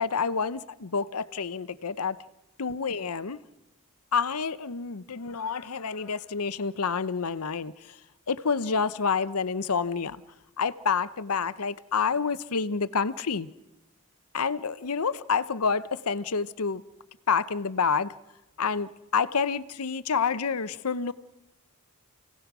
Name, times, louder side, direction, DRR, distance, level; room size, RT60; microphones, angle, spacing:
voice 1, 0.0-2.2 2.6-3.4 4.1-7.7 8.3-10.2 10.6-13.5 14.3-16.8 17.3-18.1 18.6-21.1, left 5 dB, 80° left, 0.8 m, -28 dB
29.0 x 17.5 x 6.1 m
head